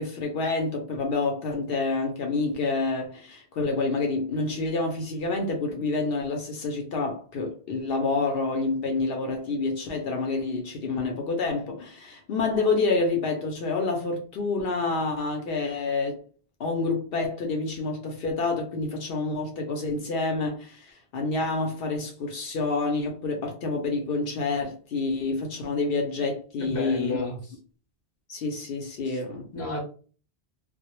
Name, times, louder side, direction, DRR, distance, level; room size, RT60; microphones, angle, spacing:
voice 1, 0.0-16.2 16.6-27.2 28.3-29.5, left 3 dB, 65° left, 0.7 m, -28 dB
voice 2, 26.6-27.5 29.1-29.2 29.5-29.8, left 3 dB, 15° left, 0.6 m, -32 dB
2.0 x 2.0 x 2.9 m
omnidirectional pair, 1.1 m